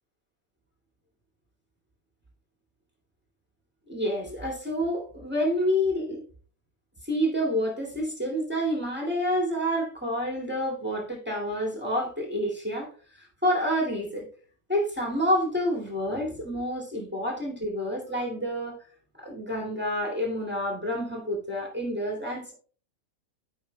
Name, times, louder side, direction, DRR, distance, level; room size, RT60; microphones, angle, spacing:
voice 1, 3.9-6.2 7.0-14.3 14.7-18.8 19.2-22.5, equal, 5° right, 2.2 m, -28 dB
13.5 x 5.6 x 2.2 m
omnidirectional pair, 1.5 m